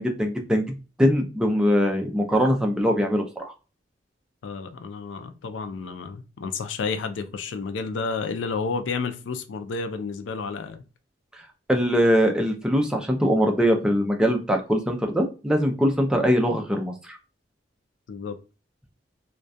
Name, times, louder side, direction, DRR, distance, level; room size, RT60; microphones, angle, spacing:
voice 1, 0.0-3.5 11.7-17.2, equal, 5° right, 0.4 m, -22 dB
voice 2, 4.4-10.8 18.1-18.4, left 4 dB, 85° left, 0.4 m, -31 dB
2.3 x 2.2 x 2.6 m
head